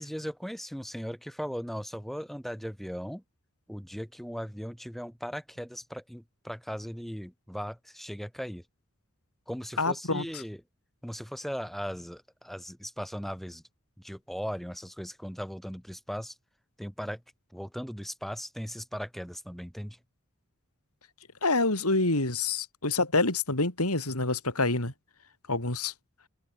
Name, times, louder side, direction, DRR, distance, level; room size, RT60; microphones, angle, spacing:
voice 1, 0.0-3.2 3.7-8.6 9.5-10.6 11.0-13.6 14.0-16.3 16.8-17.2 17.5-20.0, equal, ahead, 4.2 m, -38 dB
voice 2, 9.8-10.4 21.4-24.9 25.5-25.9, left 3 dB, 90° left, 5.8 m, -27 dB
open air
head